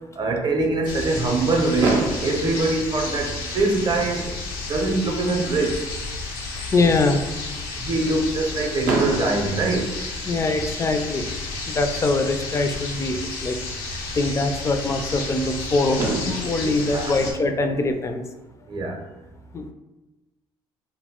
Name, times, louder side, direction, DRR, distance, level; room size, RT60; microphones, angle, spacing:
voice 1, 0.2-4.3 4.7-5.8 7.8-9.9 16.9-17.2 18.7-19.0, right 2 dB, 40° right, 3 dB, 0.6 m, -23 dB
sound 1, 0.8-17.3, left 3 dB, 90° left, 0.5 m, -32 dB
Fireworks, 1.8-3.8 4.7-4.8 4.9-5.1 5.5-5.6 8.8-10.7 12.4-12.5 15.5-15.6 16.0-18.3, right 2 dB, 80° right, 0.6 m, -30 dB
voice 2, 6.7-7.2 10.2-11.3 11.7-13.6 13.8-18.2 19.5-19.7, left 2 dB, 25° left, 6 dB, 0.3 m, -23 dB
2.3 x 2.1 x 3.5 m, 1.1 s
supercardioid pair, 70°, 12 cm